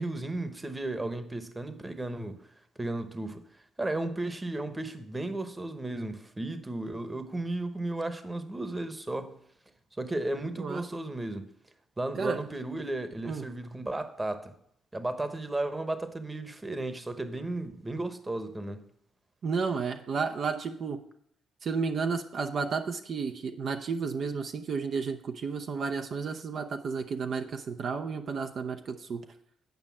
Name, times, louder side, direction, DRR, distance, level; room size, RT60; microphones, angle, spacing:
voice 1, 0.0-2.4 2.8-3.5 3.8-9.4 10.0-11.5 12.0-14.5 14.9-18.8, right 2 dB, 15° right, 1.1 m, -34 dB
voice 2, 19.4-21.0 21.6-29.2, right 5 dB, 55° right, 0.7 m, -32 dB
9.3 x 5.3 x 7.1 m
cardioid pair, 90°, 0 cm